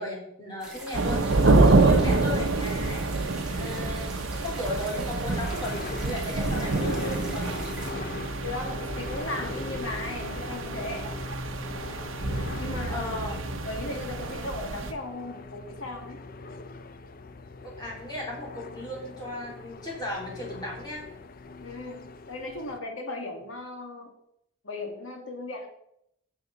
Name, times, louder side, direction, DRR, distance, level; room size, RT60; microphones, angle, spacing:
voice 1, 0.0-3.1 3.5-7.5 12.9-13.4 17.6-21.0, left 1 dB, 20° left, -3 dB, 3.5 m, -35 dB
sound 1, 0.6-7.9, right 1 dB, 5° right, 2.9 m, -43 dB
sound 2, 0.9-14.9, right 3 dB, 80° right, 0.9 m, -27 dB
sound 3, 5.3-22.8, left 3 dB, 45° left, 0.6 m, -40 dB
voice 2, 8.4-11.1 12.6-13.2 13.6-16.2 21.6-24.1 24.6-25.7, left 2 dB, 90° left, 3 dB, 2.1 m, -37 dB
12.0 x 6.8 x 4.0 m, 0.75 s
head